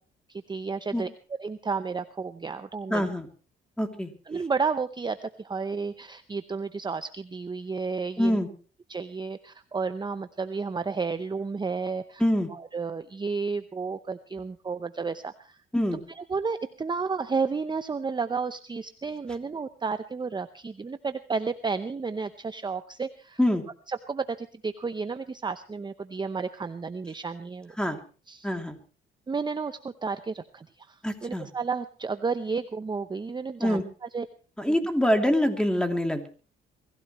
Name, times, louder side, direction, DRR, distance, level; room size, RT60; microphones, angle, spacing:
voice 1, 0.3-1.1 1.4-3.0 4.3-8.4 8.9-12.2 12.5-15.6 16.2-23.4 23.9-27.8 28.3-28.5 29.3-33.8 34.1-34.3 34.6-34.7, right 4 dB, 20° right, 11 dB, 0.8 m, -32 dB
voice 2, 2.9-3.3 3.8-4.1 8.2-8.5 12.2-12.5 15.7-16.0 23.4-23.6 27.8-28.0 28.4-28.8 31.0-31.5 33.6-33.8 34.6-36.3, left 1 dB, 5° left, 5 dB, 2.8 m, -25 dB
24.0 x 15.5 x 3.1 m, 0.37 s
cardioid pair, 90°, 20 cm